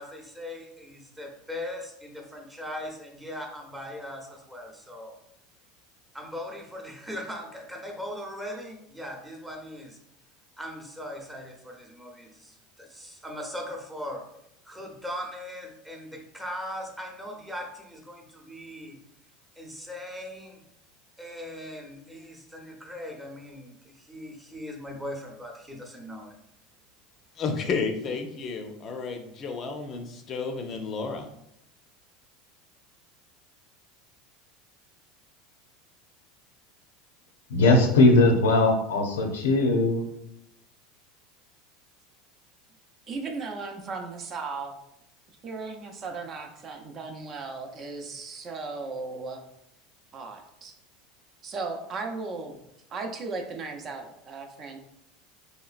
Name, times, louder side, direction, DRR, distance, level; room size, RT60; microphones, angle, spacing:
voice 1, 0.0-5.1 6.1-10.0 10.6-14.2 14.7-19.0 19.6-20.6 21.2-23.7 24.1-26.3, left 1 dB, 10° right, 1 dB, 0.8 m, -39 dB
voice 2, 27.4-31.3, left 4 dB, 45° left, 5 dB, 0.5 m, -32 dB
voice 3, 37.5-40.1, left 2 dB, 85° left, 3 dB, 0.6 m, -20 dB
voice 4, 43.1-44.8 45.4-49.4 50.1-50.7 51.4-52.6 52.9-54.8, right 4 dB, 40° right, 4 dB, 0.6 m, -36 dB
3.2 x 2.9 x 2.4 m, 0.78 s
hypercardioid pair, 95°, 0 cm